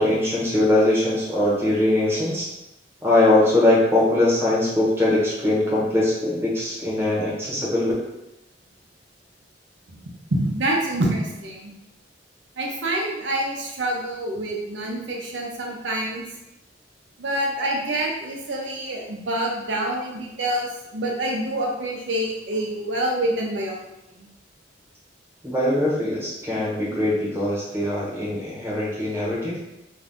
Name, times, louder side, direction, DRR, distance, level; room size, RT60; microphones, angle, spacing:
voice 1, 0.0-2.5 3.0-7.9 25.4-29.6, left 1 dB, 15° right, -6 dB, 0.9 m, -21 dB
voice 2, 10.3-11.7 12.6-16.2 17.2-23.8 24.2-24.3, right 1 dB, 85° right, -1 dB, 0.6 m, -26 dB
2.6 x 2.4 x 3.4 m, 0.89 s
head